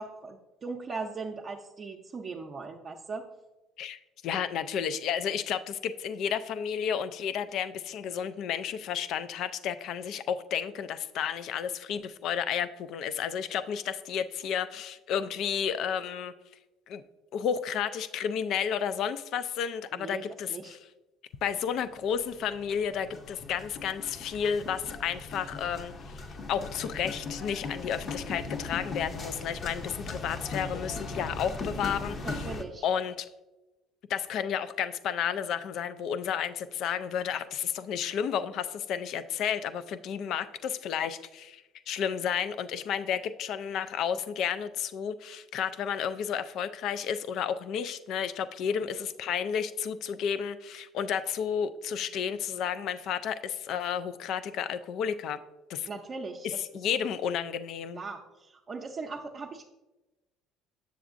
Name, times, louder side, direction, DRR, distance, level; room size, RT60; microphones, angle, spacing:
voice 1, 0.0-3.2 19.9-20.8 32.2-32.8 55.9-56.6 57.9-59.7, right 4 dB, 40° right, -1 dB, 0.5 m, -39 dB
voice 2, 3.8-16.3 16.9-17.0 17.3-20.8 21.4-32.5 32.8-33.3 34.1-55.4 55.7-55.9 56.4-58.0, left 8 dB, 65° left, 13 dB, 0.3 m, -32 dB
sound 1, 21.6-21.9 22.1-32.6, left 3 dB, 40° left, 0.7 m, -39 dB
7.0 x 6.9 x 2.5 m, 1.1 s
supercardioid pair, 80°, 0 cm